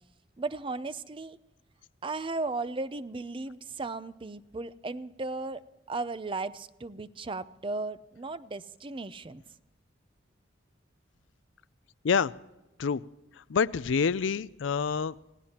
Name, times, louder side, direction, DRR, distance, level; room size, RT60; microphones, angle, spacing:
voice 1, 0.4-1.4 2.0-5.6 5.9-9.4, right 3 dB, 30° right, 14 dB, 0.6 m, -35 dB
voice 2, 13.4-15.1, left 6 dB, 90° left, 17 dB, 0.5 m, -27 dB
28.0 x 17.5 x 2.9 m, 1.0 s
head